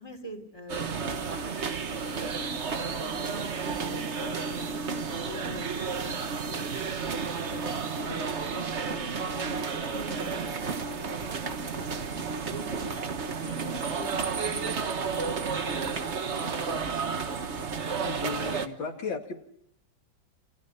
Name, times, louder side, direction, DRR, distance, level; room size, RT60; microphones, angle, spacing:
voice 1, 0.0-1.7 2.1-4.8 5.2-5.7 6.0-9.6 9.9-15.3 15.6-17.3, left 1 dB, 10° left, 2 dB, 3.6 m, -44 dB
sound 1, 0.7-18.7, right 5 dB, 40° right, 1.3 m, -32 dB
voice 2, 18.0-19.4, left 5 dB, 90° left, 3 dB, 2.9 m, -35 dB
29.5 x 27.0 x 5.7 m, 0.73 s
omnidirectional pair, 2.0 m